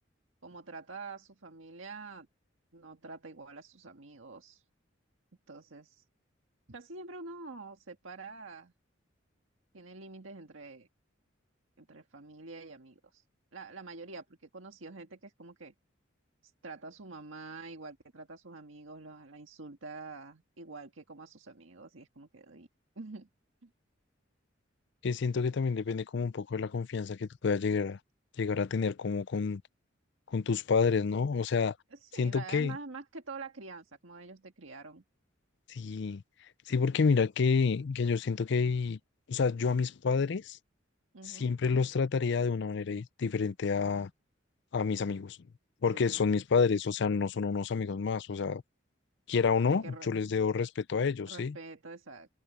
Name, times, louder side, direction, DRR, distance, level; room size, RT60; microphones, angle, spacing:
voice 1, 0.4-2.3 2.7-4.6 5.5-6.0 6.7-8.7 9.7-10.9 11.8-13.2 13.5-15.7 16.4-22.7 22.9-23.3 23.6-23.7 31.9-35.0 41.1-41.5 45.9-46.2 49.7-50.1 51.3-52.3, right 3 dB, 85° right, 1.7 m, -46 dB
voice 2, 25.0-28.0 28.4-29.6 30.3-31.7 32.2-32.8 35.7-36.2 36.7-39.0 39.3-40.6 41.3-44.1 44.7-45.4 45.8-48.6 49.3-51.6, left 5 dB, 60° left, 0.5 m, -29 dB
head